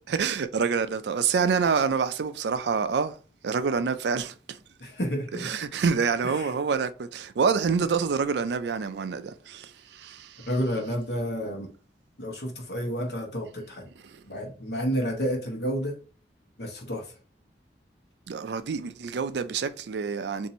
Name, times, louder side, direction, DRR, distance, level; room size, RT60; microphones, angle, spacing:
voice 1, 0.1-3.1 3.4-4.6 5.4-10.5 14.0-14.2 18.3-20.5, right 5 dB, 75° right, 0.4 m, -27 dB
voice 2, 4.8-5.5 6.2-6.5 10.5-11.7 12.2-13.9 14.2-16.0 16.6-17.1, equal, 70° left, 1.1 m, -30 dB
2.7 x 2.6 x 4.1 m
head